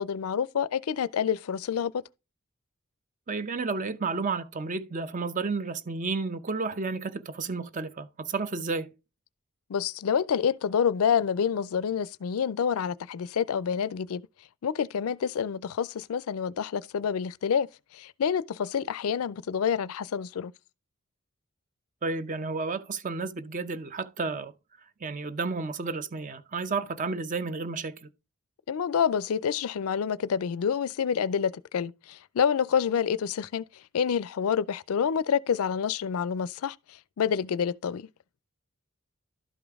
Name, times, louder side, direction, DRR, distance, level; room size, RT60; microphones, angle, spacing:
voice 1, 0.0-2.0 9.7-14.2 14.6-17.7 17.9-20.5 28.7-33.6 33.9-38.1, left 7 dB, 80° left, 0.4 m, -28 dB
voice 2, 3.3-8.9 22.0-24.5 25.0-28.1, right 4 dB, 35° right, 0.6 m, -32 dB
12.0 x 5.1 x 3.5 m
head